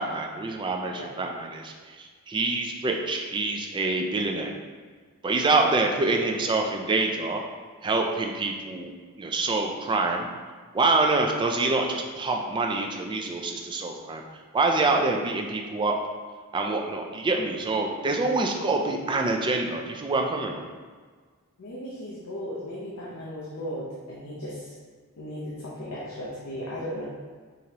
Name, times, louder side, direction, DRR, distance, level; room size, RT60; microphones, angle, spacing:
voice 1, 0.0-4.5 5.2-7.4 7.8-8.9 9.2-10.3 10.7-14.2 14.5-16.0 16.5-20.7, right 3 dB, 20° right, 2 dB, 0.3 m, -26 dB
voice 2, 21.6-24.7 25.2-27.0, left 1 dB, 70° left, -6 dB, 0.7 m, -36 dB
5.1 x 2.9 x 2.8 m, 1.5 s
head